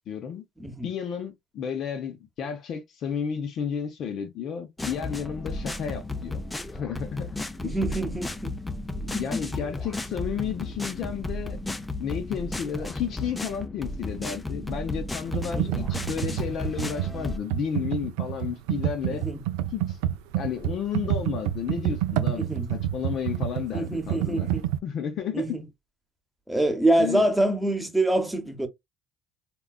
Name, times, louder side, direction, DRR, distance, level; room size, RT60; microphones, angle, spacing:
voice 1, 0.1-0.4 0.8-6.4 6.7-7.8 9.0-11.6 12.0-19.2 19.7-20.0 20.3-24.5 24.8-25.6 27.0-27.3, left 7 dB, 60° left, 0.7 m, -32 dB
voice 2, 0.6-0.9 7.6-8.6 9.1-9.5 15.5-15.9 19.1-19.4 22.3-22.7 23.7-24.7 25.3-25.6 26.5-28.7, right 1 dB, 5° right, 0.9 m, -26 dB
sound 1, 4.8-17.4, left 2 dB, 15° left, 0.5 m, -34 dB
Computer keyboard, 15.3-24.8, right 12 dB, 90° right, 0.4 m, -28 dB
3.7 x 2.3 x 2.3 m
supercardioid pair, 90°, 0 cm